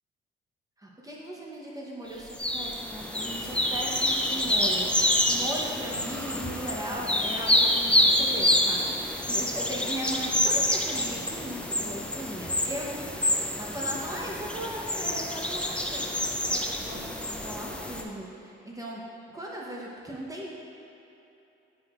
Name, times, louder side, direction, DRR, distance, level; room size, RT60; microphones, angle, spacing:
voice 1, 0.8-19.0 19.3-20.5, right 1 dB, 15° right, -4 dB, 0.9 m, -38 dB
sound 1, 2.3-18.0, left 1 dB, 5° left, 0.5 m, -27 dB
9.2 x 4.8 x 2.5 m, 2.8 s
cardioid pair, 90°, 20 cm